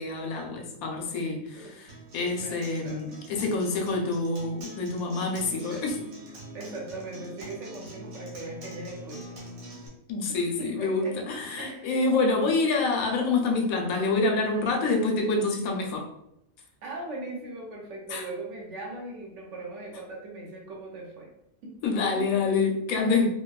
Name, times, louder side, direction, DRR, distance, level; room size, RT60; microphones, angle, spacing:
voice 1, 0.0-6.0 10.1-16.1 18.1-18.2 21.8-23.3, left 3 dB, 85° left, 2 dB, 1.0 m, -27 dB
voice 2, 1.1-1.8 2.4-3.2 6.5-9.3 10.3-11.2 11.6-12.0 16.8-21.3 21.6-21.8 22.1-22.5 22.9-23.2, right 2 dB, 65° right, -1 dB, 0.9 m, -40 dB
Acoustic guitar, 1.9-9.9, right 1 dB, 90° right, 1.2 m, -44 dB
2.8 x 2.2 x 2.3 m, 0.79 s
omnidirectional pair, 1.4 m